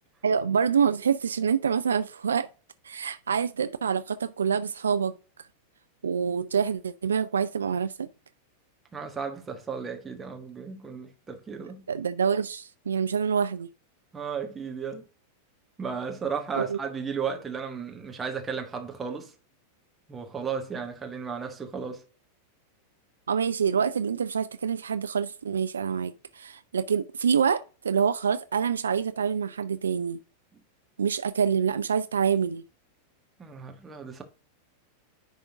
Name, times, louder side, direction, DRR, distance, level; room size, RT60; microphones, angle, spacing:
voice 1, 0.2-2.5 2.8-5.1 6.0-8.1 11.9-13.7 16.6-16.8 23.3-30.2 31.0-32.6, right 7 dB, 70° right, 0.3 m, -26 dB
voice 2, 8.9-11.8 14.1-15.0 15.8-19.3 20.1-22.0 33.4-34.2, right 6 dB, 15° right, 1.4 m, -34 dB
10.5 x 3.7 x 3.6 m
figure-of-eight pair, 90°, 0 cm